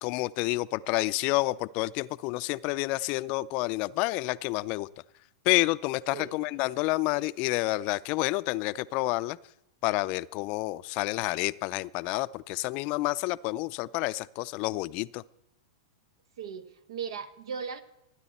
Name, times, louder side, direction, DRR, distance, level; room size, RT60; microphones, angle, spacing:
voice 1, 0.0-4.9 5.5-9.4 9.8-15.2, left 20 dB, 45° left, 0.5 m, -29 dB
voice 2, 6.1-6.5 16.4-17.8, right 6 dB, 75° right, 1.6 m, -38 dB
29.0 x 9.9 x 4.2 m
hypercardioid pair, 125°, 3 cm